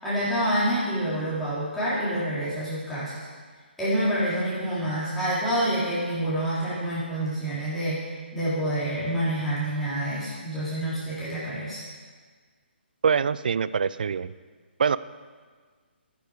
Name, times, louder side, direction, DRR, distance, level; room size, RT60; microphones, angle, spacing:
voice 1, 0.0-3.1 3.8-8.0 8.3-11.8, right 1 dB, ahead, -13 dB, 3.6 m, -27 dB
voice 2, 13.0-14.3 14.8-15.0, right 6 dB, 50° right, 17 dB, 0.4 m, -24 dB
13.5 x 9.5 x 5.1 m, 1.5 s
figure-of-eight pair, 135°, 6 cm